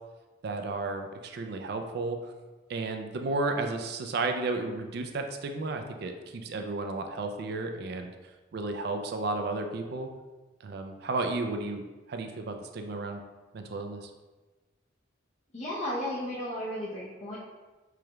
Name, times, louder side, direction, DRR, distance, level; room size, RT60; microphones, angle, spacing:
voice 1, 0.4-2.3 2.7-8.1 8.5-10.1 10.6-11.8 12.1-13.2 13.5-14.1, right 3 dB, 55° right, 5 dB, 0.4 m, -33 dB
voice 2, 15.5-17.4, equal, 35° left, -6 dB, 0.6 m, -34 dB
4.7 x 2.3 x 3.0 m, 1.2 s
head